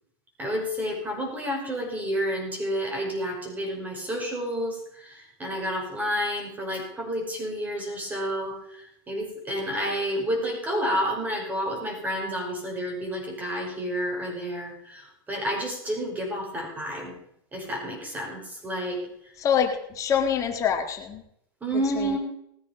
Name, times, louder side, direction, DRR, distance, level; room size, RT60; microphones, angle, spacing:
voice 1, 0.4-8.6 9.1-17.1 17.5-19.0 21.6-22.2, equal, 15° right, 1 dB, 5.2 m, -30 dB
voice 2, 19.4-21.2 22.0-22.2, left 8 dB, 25° left, 4 dB, 1.9 m, -25 dB
19.5 x 9.5 x 5.2 m, 0.74 s
supercardioid pair, 140°, 12 cm